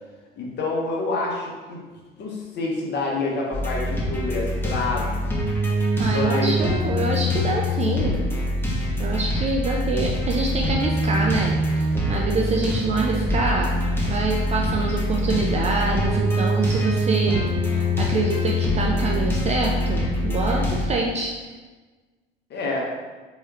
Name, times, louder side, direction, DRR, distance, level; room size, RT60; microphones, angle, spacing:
voice 1, 0.4-1.8 2.2-5.2 6.0-6.6 22.5-22.8, left 3 dB, 35° left, -2 dB, 1.1 m, -27 dB
sound 1, 3.5-20.8, equal, 5° left, 1.1 m, -24 dB
voice 2, 6.0-8.2 9.0-13.7 14.1-21.5, right 3 dB, 20° right, 0 dB, 0.4 m, -26 dB
4.5 x 3.1 x 3.3 m, 1.3 s
figure-of-eight pair, 65°, 30 cm